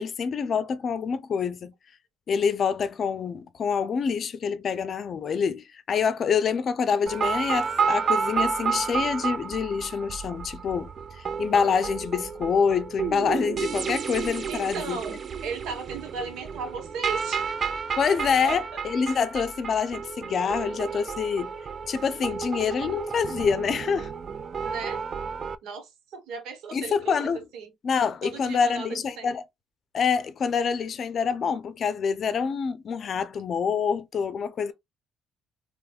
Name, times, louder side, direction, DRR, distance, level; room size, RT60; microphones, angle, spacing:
voice 1, 0.0-1.7 2.3-10.9 11.2-15.0 18.0-21.5 21.9-24.1 26.7-27.4 27.8-29.4 29.9-34.7, left 6 dB, 50° left, 0.5 m, -26 dB
trip fx, 7.1-25.6, right 6 dB, 40° right, 0.3 m, -31 dB
voice 2, 14.5-17.6 18.4-18.8 19.1-19.2 24.6-25.0 25.6-27.7 28.2-29.3, right 5 dB, 85° right, 1.0 m, -36 dB
3.4 x 3.0 x 2.3 m
cardioid pair, 110°, 0 cm